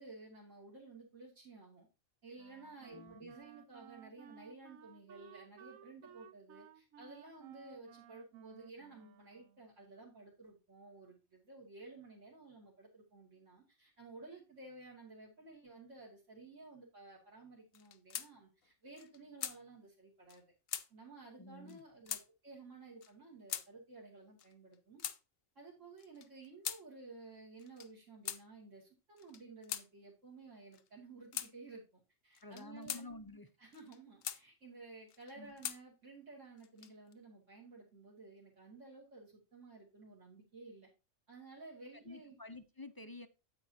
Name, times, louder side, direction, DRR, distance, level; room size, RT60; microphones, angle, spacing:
voice 1, 0.0-1.9 2.2-20.4 20.9-25.0 25.5-33.1 33.6-40.9 41.3-42.4, right 3 dB, 65° right, 2.9 m, -54 dB
Wind instrument woodwind instrument, 2.4-9.8, right 10 dB, 85° right, 1.1 m, -59 dB
voice 2, 2.9-3.3 21.3-21.8 32.4-33.5 35.4-35.5 41.9-43.3, left 2 dB, 30° left, 0.4 m, -50 dB
sound 1, 17.7-18.3 18.6-18.7 19.0-19.6 20.3-20.4 20.7-20.9 21.7-21.8 22.1-22.3 23.0-23.1 23.5-23.7 24.4-25.2 26.0-26.8 27.6-27.9 28.3-28.4 29.2-29.9 30.7-30.9 31.3-31.5 32.4-33.0 33.7-34.4 35.1-35.8 36.6-37.1, left 10 dB, 90° left, 1.2 m, -42 dB
9.0 x 8.6 x 2.8 m
omnidirectional pair, 1.4 m